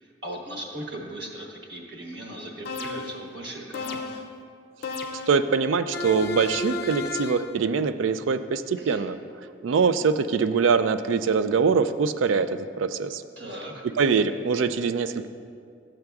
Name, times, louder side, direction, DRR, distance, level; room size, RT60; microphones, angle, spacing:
voice 1, 0.0-4.2 8.8-9.0 13.4-13.7, right 1 dB, 60° right, 0 dB, 1.3 m, -38 dB
sound 1, 2.7-3.3 3.7-4.4 4.8-5.5 5.9-7.5, left 3 dB, 50° left, 0.4 m, -32 dB
voice 2, 5.3-9.2 9.6-12.5 12.8-13.2 14.0-15.3, right 5 dB, 85° right, 12 dB, 0.4 m, -23 dB
13.5 x 7.7 x 2.3 m, 2.3 s
head